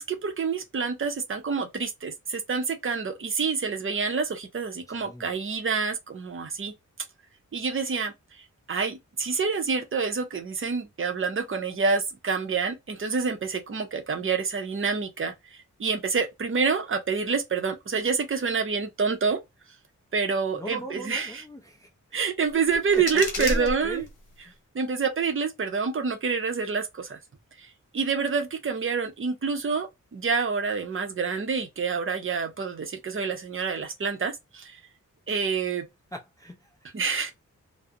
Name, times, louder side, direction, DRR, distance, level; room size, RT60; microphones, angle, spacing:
voice 1, 0.0-6.7 7.5-8.1 8.7-15.3 15.8-19.4 20.1-21.4 22.1-24.0 24.7-27.2 27.6-27.7 27.9-34.8 35.3-35.9 36.9-37.3, right 5 dB, 40° right, 0.6 m, -27 dB
voice 2, 4.9-5.3 20.5-21.9 22.7-24.1 24.4-24.6 36.1-36.7, equal, 10° left, 0.4 m, -38 dB
sound 1, 22.5-24.4, left 1 dB, 75° left, 1.0 m, -33 dB
2.4 x 2.0 x 2.6 m
wide cardioid pair, 155°, 31 cm